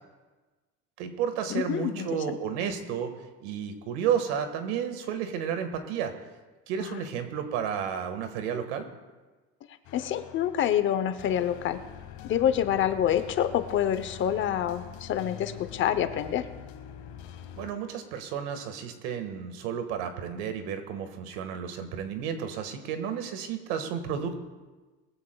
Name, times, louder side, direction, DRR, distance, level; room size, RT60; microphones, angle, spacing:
voice 1, 1.0-3.1 3.4-6.1 6.7-8.9 17.5-24.4, right 8 dB, 90° right, 7 dB, 1.7 m, -32 dB
voice 2, 1.5-2.4 6.8-7.1 9.9-11.8 12.2-16.5, left 10 dB, 40° left, 11 dB, 0.8 m, -27 dB
sound 1, 9.8-17.7, left 10 dB, 65° left, 1.4 m, -44 dB
20.5 x 14.5 x 2.3 m, 1.2 s
cardioid pair, 145°, 31 cm